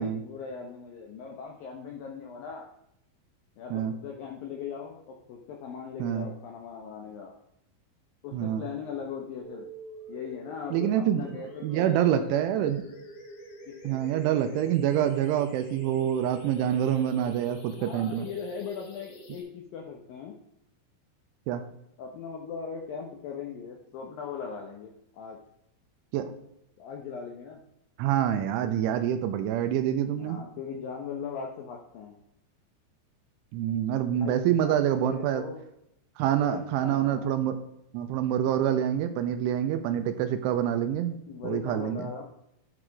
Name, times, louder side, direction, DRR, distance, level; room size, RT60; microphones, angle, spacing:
voice 1, 0.0-2.7 3.6-7.3 8.2-9.7 10.1-12.7 13.7-14.0 17.8-20.4 22.0-25.4 26.8-27.6 30.2-32.2 34.1-35.6 36.4-37.3 41.3-42.2, left 6 dB, 80° left, 1 dB, 2.0 m, -39 dB
voice 2, 8.3-8.7 10.7-11.3 11.6-12.8 13.8-18.3 21.5-21.7 26.1-26.3 28.0-30.4 33.5-35.4 36.2-37.6 37.9-41.2 41.4-42.1, right 10 dB, 85° right, 8 dB, 3.2 m, -26 dB
sound 1, 9.4-19.4, equal, 50° left, 2.8 m, -46 dB
11.0 x 4.9 x 4.7 m, 0.79 s
omnidirectional pair, 5.5 m